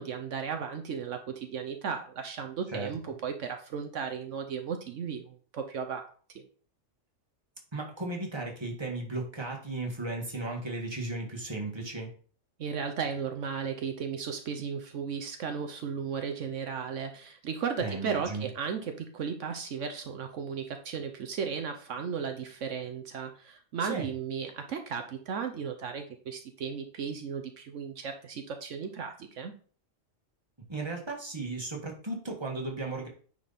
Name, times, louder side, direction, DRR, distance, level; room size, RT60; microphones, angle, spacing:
voice 1, 0.0-6.1 6.3-6.4 12.6-29.5, right 6 dB, 75° right, 6 dB, 1.1 m, -35 dB
voice 2, 7.7-12.1 17.8-18.5 23.8-24.1 30.7-33.1, right 2 dB, 20° right, 0 dB, 1.8 m, -35 dB
9.6 x 4.6 x 4.1 m, 0.43 s
omnidirectional pair, 1.3 m